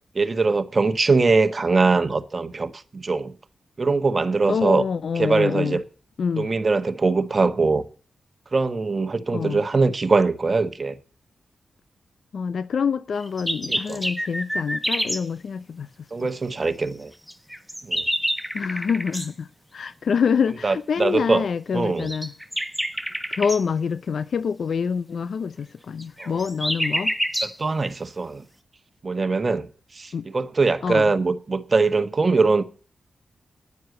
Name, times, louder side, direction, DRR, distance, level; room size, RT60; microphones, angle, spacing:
voice 1, 0.1-3.3 3.8-4.8 5.2-5.8 6.4-7.8 8.5-11.0 13.7-14.0 16.1-17.1 17.8-18.0 20.6-21.4 21.7-22.1 26.2-26.4 27.4-28.4 29.0-29.7 29.9-32.6, right 3 dB, 45° right, 1.3 m, -22 dB
voice 2, 4.5-5.8 6.2-6.5 9.3-9.6 12.3-15.9 16.2-16.3 18.5-22.3 23.3-27.1 30.1-30.3 30.8-31.1, left 6 dB, 70° left, 0.5 m, -26 dB
sound 1, 13.2-15.2 17.3-19.3 22.0-23.6 26.0-27.6, equal, ahead, 1.4 m, -27 dB
9.7 x 9.3 x 7.9 m
supercardioid pair, 45°, 0 cm